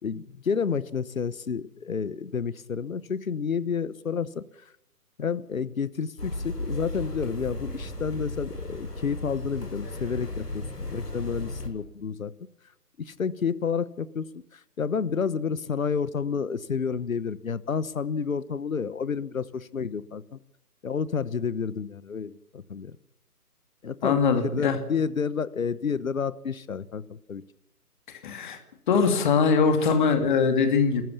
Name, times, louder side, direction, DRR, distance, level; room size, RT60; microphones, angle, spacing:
voice 1, 0.0-4.4 5.2-12.3 13.0-20.4 20.8-23.0 23.8-27.4, left 6 dB, 60° left, 18 dB, 1.2 m, -30 dB
sound 1, 6.2-11.7, left 1 dB, 85° left, 5.3 m, -35 dB
voice 2, 24.0-24.8 28.1-28.6 28.9-31.0, left 5 dB, 30° left, 7 dB, 2.4 m, -22 dB
28.0 x 14.0 x 7.2 m, 0.79 s
figure-of-eight pair, 145°, 46 cm